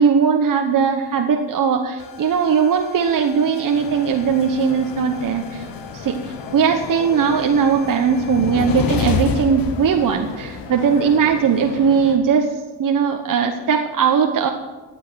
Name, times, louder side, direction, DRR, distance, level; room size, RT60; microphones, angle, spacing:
voice 1, 0.0-5.6 5.9-6.2 6.5-12.5 12.8-14.5, right 6 dB, 50° right, 3 dB, 1.1 m, -19 dB
sound 1, 2.0-10.6, left 6 dB, 55° left, 1.2 m, -30 dB
sound 2, 3.7-12.2, left 5 dB, 80° left, 1.8 m, -35 dB
15.0 x 9.1 x 6.3 m, 1.2 s
cardioid pair, 100°, 42 cm